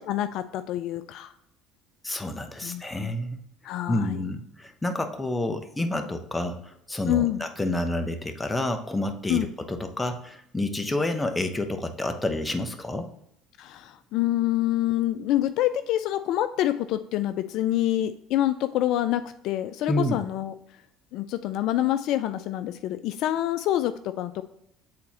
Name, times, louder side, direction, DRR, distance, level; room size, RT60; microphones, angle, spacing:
voice 1, 0.0-1.3 2.6-3.1 3.6-4.2 7.1-7.4 9.3-9.5 13.6-20.5 21.1-24.4, left 13 dB, 65° left, 11 dB, 0.3 m, -26 dB
voice 2, 2.0-3.4 3.9-13.1 19.9-20.2, left 1 dB, 15° left, 6 dB, 0.9 m, -29 dB
7.6 x 4.2 x 2.9 m, 0.78 s
supercardioid pair, 75°, 0 cm